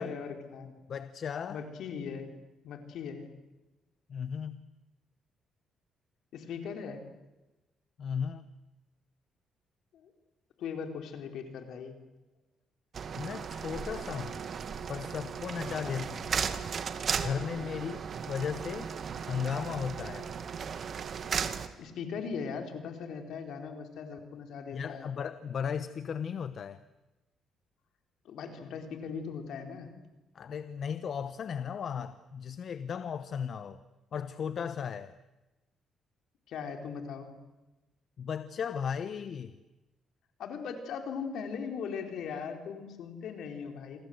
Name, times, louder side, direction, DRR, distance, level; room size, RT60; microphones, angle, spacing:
voice 1, 0.0-0.8 1.5-2.3 2.6-3.3 6.3-7.0 9.9-10.1 10.6-12.0 15.8-16.1 17.5-17.7 21.8-25.1 28.2-29.9 36.5-37.3 40.4-44.0, left 6 dB, 75° left, 4.3 m, -39 dB
voice 2, 0.9-1.6 4.1-4.7 8.0-8.4 13.2-14.4 14.9-16.3 17.2-18.9 19.2-20.3 24.7-26.8 30.3-33.8 34.1-35.2 38.2-39.6, left 7 dB, 55° left, 1.0 m, -36 dB
sound 1, 12.9-21.7, right 6 dB, 50° right, 2.1 m, -36 dB
28.5 x 22.5 x 8.0 m
cardioid pair, 90°, 0 cm